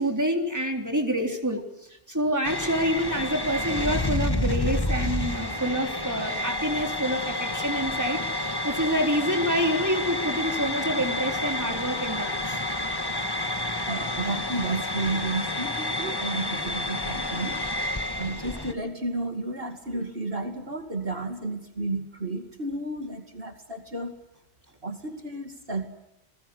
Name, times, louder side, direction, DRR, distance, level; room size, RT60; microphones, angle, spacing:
voice 1, 0.0-1.6 2.1-12.6, equal, 15° right, 3 dB, 3.6 m, -27 dB
sound 1, 2.4-18.7, left 1 dB, 20° left, 1.6 m, -29 dB
voice 2, 13.9-24.1 24.8-25.8, right 2 dB, 60° right, 5 dB, 2.7 m, -32 dB
29.5 x 20.0 x 8.2 m, 0.85 s
omnidirectional pair, 1.1 m